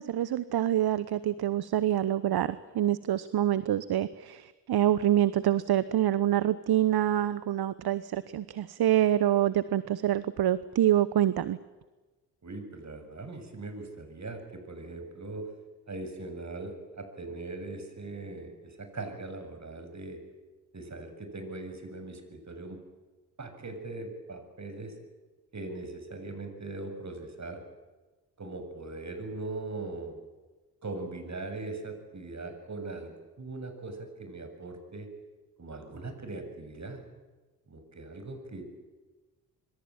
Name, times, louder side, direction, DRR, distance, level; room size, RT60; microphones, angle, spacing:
voice 1, 0.0-11.6, right 12 dB, 55° right, 16 dB, 1.1 m, -26 dB
voice 2, 12.4-15.5 15.9-20.2 20.7-22.8 23.4-25.0 25.5-27.6 28.4-30.2 30.8-35.1 35.6-37.0 37.7-38.6, right 2 dB, 35° right, 7 dB, 7.3 m, -40 dB
26.5 x 22.5 x 8.9 m, 1.2 s
hypercardioid pair, 45°, 46 cm